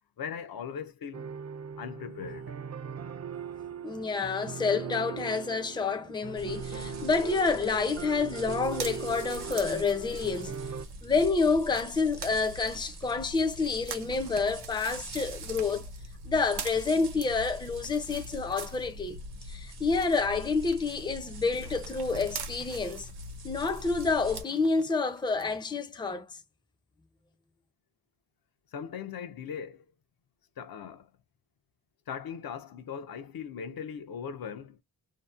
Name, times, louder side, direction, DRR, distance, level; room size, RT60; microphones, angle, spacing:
voice 1, 0.2-1.3 1.8-2.5 28.7-29.9 30.6-31.1 32.1-34.8, left 7 dB, 65° left, 0.5 m, -39 dB
sound 1, 1.1-10.8, right 7 dB, 45° right, 0.5 m, -39 dB
voice 2, 3.8-10.6 11.0-15.9 16.2-19.2 19.5-23.1 23.4-26.3, left 4 dB, 10° left, 0.4 m, -28 dB
sound 2, 6.4-24.4, equal, 70° right, 0.9 m, -43 dB
sound 3, 8.6-19.4 19.7-25.4 25.9-26.0, right 8 dB, 90° right, 0.6 m, -46 dB
2.7 x 2.0 x 2.3 m
wide cardioid pair, 120°, 39 cm